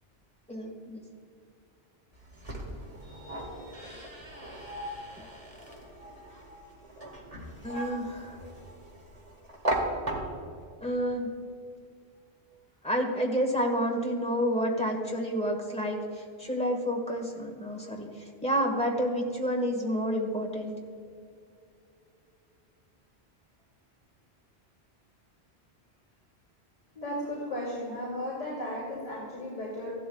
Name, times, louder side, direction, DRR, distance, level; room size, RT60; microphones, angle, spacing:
voice 1, 0.5-1.0 7.6-8.4 10.8-11.3 12.8-18.1 18.4-20.7, equal, 5° left, 0 dB, 1.5 m, -29 dB
sound 1, 2.1-10.6, right 1 dB, 35° right, 1.8 m, -37 dB
voice 2, 3.0-4.0 27.0-29.9, left 1 dB, 45° left, -7 dB, 2.8 m, -36 dB
15.5 x 12.0 x 2.3 m, 2.4 s
omnidirectional pair, 1.1 m